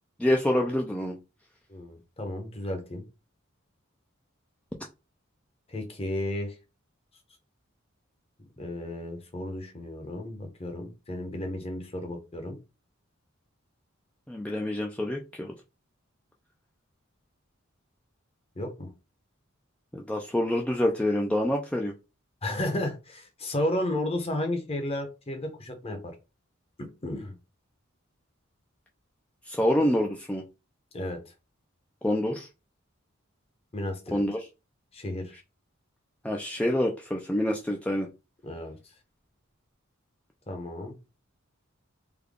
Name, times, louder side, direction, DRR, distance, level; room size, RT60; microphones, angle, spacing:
voice 1, 0.2-1.2 14.3-15.5 19.9-21.9 29.5-30.4 32.0-32.5 34.1-34.5 36.2-38.1, left 1 dB, 5° left, 0 dB, 0.3 m, -27 dB
voice 2, 1.7-3.0 5.7-6.5 8.6-12.6 18.6-18.9 22.4-26.1 27.0-27.3 30.9-31.2 33.7-34.2 34.9-35.3 38.4-38.8 40.5-40.9, left 1 dB, 30° left, 4 dB, 0.9 m, -33 dB
3.4 x 2.2 x 3.6 m, 0.28 s
head